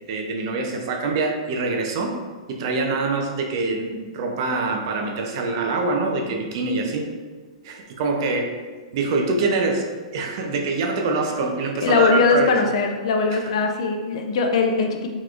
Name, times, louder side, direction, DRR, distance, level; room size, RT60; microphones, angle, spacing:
voice 1, 0.1-2.2 2.5-7.1 7.6-8.5 8.9-9.9 10.1-12.5 13.3-13.5, right 3 dB, 40° right, 2 dB, 0.4 m, -24 dB
voice 2, 11.8-15.1, left 4 dB, 50° left, 4 dB, 0.4 m, -20 dB
3.9 x 3.0 x 2.4 m, 1.4 s
hypercardioid pair, 170°, 4 cm